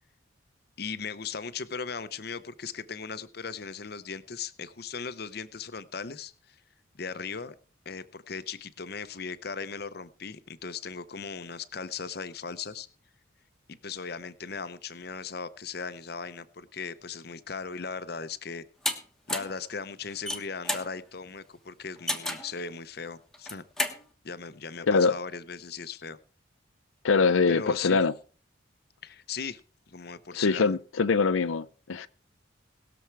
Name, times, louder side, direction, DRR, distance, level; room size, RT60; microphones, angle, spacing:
voice 1, 0.8-6.6 7.0-7.6 7.8-12.9 13.7-18.6 19.3-23.6 24.2-26.2 27.5-28.0 29.0-29.6 29.9-30.7, left 5 dB, 50° left, 0.8 m, -38 dB
sound 1, 18.8-19.0 19.3-19.6 20.1-20.9 22.1-22.5 23.3-24.0, left 1 dB, ahead, 1.3 m, -30 dB
voice 2, 27.0-28.1 30.3-32.1, left 4 dB, 90° left, 0.6 m, -23 dB
20.0 x 7.1 x 4.6 m
head